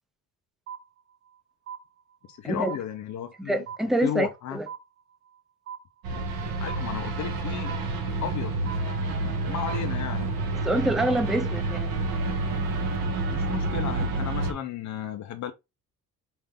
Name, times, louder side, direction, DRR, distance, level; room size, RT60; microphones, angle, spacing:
sound 1, 0.7-1.4 1.7-2.4 2.7-3.4 3.7-4.4 4.7-5.4 5.7-6.4 6.7-7.4 7.7-8.4 8.7-9.4 9.7-10.4, right 8 dB, 45° right, 0.8 m, -42 dB
voice 1, 2.3-3.7 4.0-4.6 6.1-6.3 6.6-7.7 8.2-8.5 9.5-10.3 13.3-15.5, left 10 dB, 55° left, 0.6 m, -34 dB
voice 2, 3.4-4.7 10.6-11.9, right 1 dB, ahead, 0.3 m, -26 dB
sound 2, 6.0-14.5, right 3 dB, 90° right, 1.3 m, -29 dB
sound 3, 6.3-13.1, right 8 dB, 65° right, 1.3 m, -44 dB
5.5 x 2.5 x 3.3 m
cardioid pair, 170°, 34 cm